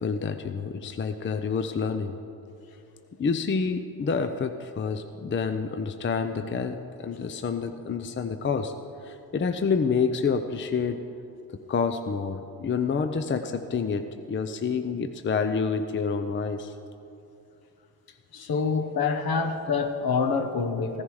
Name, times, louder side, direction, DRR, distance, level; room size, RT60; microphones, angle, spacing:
voice 1, 0.0-2.1 3.2-8.7 9.0-11.0 11.7-16.7, left 5 dB, 30° left, 8 dB, 0.6 m, -28 dB
voice 2, 18.3-21.0, left 5 dB, 65° left, 6 dB, 1.3 m, -26 dB
15.5 x 10.5 x 4.8 m, 2.6 s
cardioid pair, 90°, 40 cm